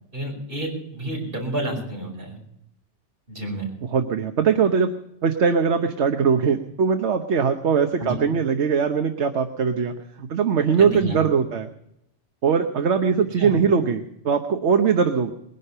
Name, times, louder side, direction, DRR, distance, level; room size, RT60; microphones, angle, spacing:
voice 1, 0.1-2.4 3.3-3.7 8.0-8.2 10.8-11.2 13.4-13.5, right 1 dB, 50° right, -1 dB, 5.4 m, -30 dB
voice 2, 3.9-4.9 5.2-11.7 12.4-15.3, right 6 dB, 70° right, 6 dB, 1.3 m, -21 dB
20.5 x 11.0 x 5.6 m, 0.79 s
omnidirectional pair, 1.2 m